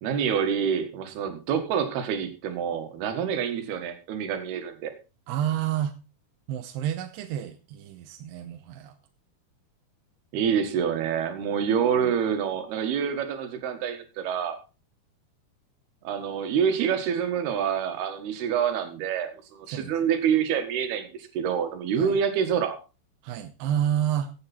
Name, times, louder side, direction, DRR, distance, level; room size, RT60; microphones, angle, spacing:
voice 1, 0.0-4.9 10.3-14.6 16.1-22.8, right 8 dB, 75° right, 8 dB, 3.6 m, -27 dB
voice 2, 5.3-6.0 6.5-9.0 12.0-12.1 19.7-20.0 22.0-22.2 23.2-24.3, right 10 dB, 90° right, 7 dB, 2.9 m, -29 dB
15.0 x 8.7 x 4.3 m, 0.31 s
omnidirectional pair, 4.7 m